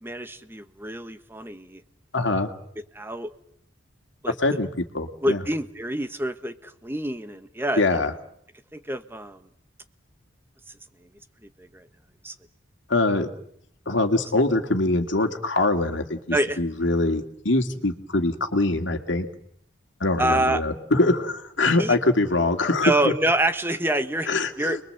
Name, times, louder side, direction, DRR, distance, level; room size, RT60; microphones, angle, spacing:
voice 1, 0.0-1.8 2.9-3.3 4.2-4.6 5.2-8.0 8.7-9.4 11.6-11.8 12.2-12.3 16.3-16.6 20.2-20.6 21.7-22.0 22.8-24.3 24.6-24.8, right 1 dB, 10° right, 9 dB, 1.3 m, -26 dB
voice 2, 2.1-2.5 4.4-5.4 7.8-8.1 12.9-13.3 13.9-19.3 20.0-23.1 24.3-24.8, left 2 dB, 65° left, 5 dB, 2.3 m, -23 dB
30.0 x 22.0 x 7.9 m, 0.70 s
head